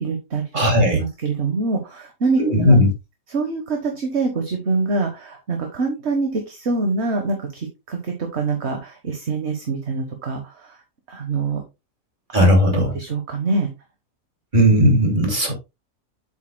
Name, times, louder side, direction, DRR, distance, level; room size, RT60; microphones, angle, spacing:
voice 1, 0.0-0.4 0.9-2.8 3.3-10.8 11.1-11.6 12.3-12.5 12.9-13.7, right 3 dB, 50° right, 4 dB, 1.5 m, -25 dB
voice 2, 0.5-1.0 2.4-2.9 12.3-12.9 14.5-15.5, equal, 35° right, 1 dB, 2.7 m, -16 dB
8.1 x 7.7 x 2.2 m, 0.24 s
omnidirectional pair, 1.5 m